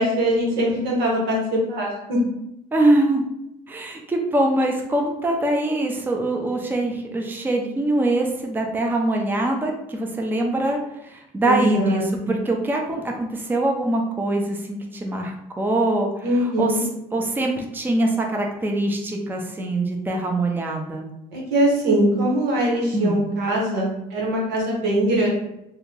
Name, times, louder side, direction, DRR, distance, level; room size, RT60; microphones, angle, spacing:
voice 1, 0.0-2.2 11.4-12.3 16.2-16.8 21.3-25.3, right 1 dB, 90° right, -2 dB, 1.1 m, -22 dB
voice 2, 2.7-3.3 3.7-16.7 17.1-21.1 22.9-23.2, right 1 dB, 10° right, 1 dB, 0.5 m, -23 dB
2.9 x 2.2 x 3.8 m, 0.86 s
cardioid pair, 110°, 17 cm